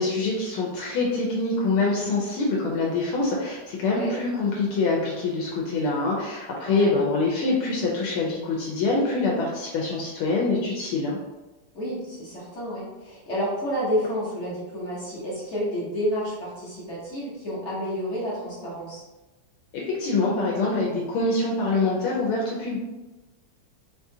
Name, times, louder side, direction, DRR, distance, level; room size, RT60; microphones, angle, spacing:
voice 1, 0.0-11.2 19.7-22.8, left 3 dB, 80° left, -3 dB, 1.5 m, -25 dB
voice 2, 11.7-19.0, equal, 50° left, -8 dB, 0.9 m, -30 dB
4.3 x 2.4 x 2.7 m, 1.1 s
omnidirectional pair, 2.4 m